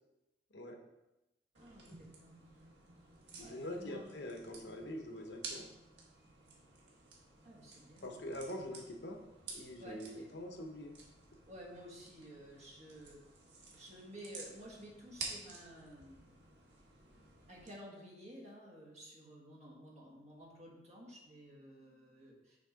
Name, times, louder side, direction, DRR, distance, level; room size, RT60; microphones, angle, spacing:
voice 1, 1.5-2.5 3.4-4.1 7.4-8.2 9.8-10.3 11.5-13.2 13.7-16.4 17.5-22.6, equal, 40° right, -2 dB, 1.5 m, -53 dB
sound 1, 1.5-17.7, right 3 dB, 75° right, 1.4 m, -52 dB
voice 2, 3.4-5.7 8.0-9.2 9.5-10.9, left 1 dB, 75° left, 3 dB, 0.9 m, -44 dB
6.2 x 3.7 x 5.0 m, 0.97 s
head